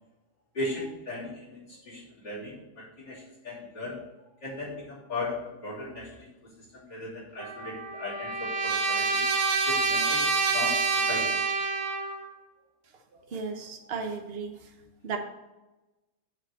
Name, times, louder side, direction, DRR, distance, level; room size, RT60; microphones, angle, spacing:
voice 1, 0.5-4.0 4.4-5.4 5.6-6.1 6.7-9.2 9.7-10.3 10.5-11.4, left 2 dB, 55° left, -7 dB, 3.9 m, -37 dB
Trumpet, 7.4-12.3, right 4 dB, 65° right, 2.3 m, -27 dB
voice 2, 13.1-14.7 15.0-15.2, right 5 dB, 45° right, 4 dB, 0.8 m, -35 dB
7.6 x 4.7 x 6.7 m, 1.1 s
omnidirectional pair, 2.4 m